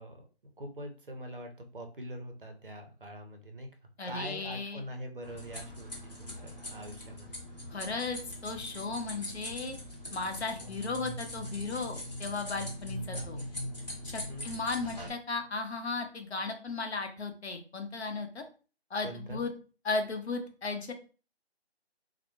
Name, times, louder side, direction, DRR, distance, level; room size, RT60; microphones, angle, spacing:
voice 1, 0.0-3.7 4.0-7.3 13.1-13.3 14.3-14.5 19.0-19.4, equal, 55° right, 4 dB, 0.5 m, -43 dB
voice 2, 4.0-4.8 7.7-9.7 10.1-13.4 14.0-18.4 18.9-19.5 19.8-20.9, left 3 dB, 75° left, 5 dB, 0.7 m, -35 dB
sound 1, 5.2-15.1, left 1 dB, 40° left, 0.8 m, -41 dB
2.2 x 2.0 x 3.0 m, 0.36 s
figure-of-eight pair, 175°, 33 cm